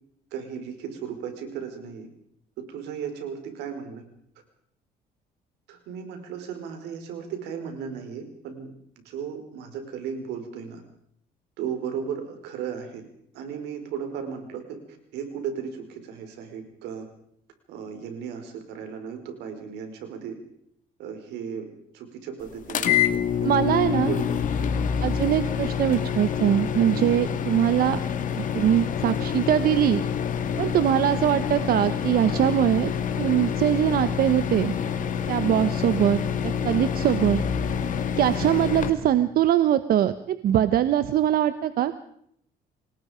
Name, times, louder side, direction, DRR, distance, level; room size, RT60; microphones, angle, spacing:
voice 1, 0.3-2.1 2.6-4.0 5.7-8.7 9.0-10.8 11.6-13.0 13.3-17.1 17.7-20.4 21.0-23.7 24.1-24.9 27.1-27.4 30.5-30.8 35.4-35.7, right 7 dB, 85° right, 6 dB, 4.9 m, -36 dB
sound 1, 22.7-38.9, left 8 dB, 50° left, 2.5 m, -27 dB
voice 2, 23.4-24.1 25.0-28.0 28.4-30.0 30.6-32.9 33.2-34.7 35.3-37.4 38.1-41.9, right 11 dB, 60° right, 12 dB, 1.1 m, -22 dB
28.0 x 19.5 x 5.2 m, 0.71 s
cardioid pair, 110°, 17 cm